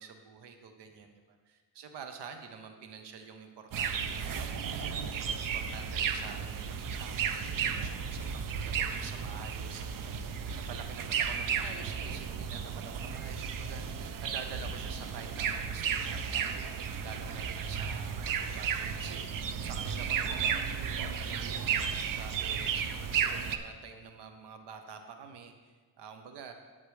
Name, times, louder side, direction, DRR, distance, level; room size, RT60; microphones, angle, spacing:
voice 1, 0.0-1.4 1.8-5.3 5.5-16.7 17.0-21.8 22.1-26.5, right 6 dB, 85° right, 6 dB, 0.8 m, -48 dB
sound 1, 3.7-23.6, right 7 dB, 55° right, 0.5 m, -34 dB
8.1 x 7.4 x 3.2 m, 1.4 s
cardioid pair, 120°, 40 cm